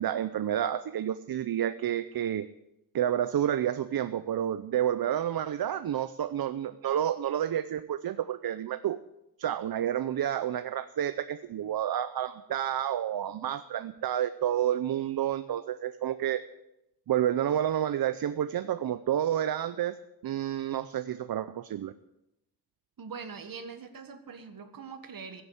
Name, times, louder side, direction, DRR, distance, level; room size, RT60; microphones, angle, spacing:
voice 1, 0.0-2.5 2.9-9.0 9.4-16.4 17.1-20.0 20.2-21.9, right 10 dB, 90° right, 12 dB, 0.6 m, -30 dB
voice 2, 23.0-25.4, right 5 dB, 70° right, 8 dB, 1.7 m, -42 dB
15.5 x 7.8 x 7.9 m, 0.85 s
wide cardioid pair, 140°, 35 cm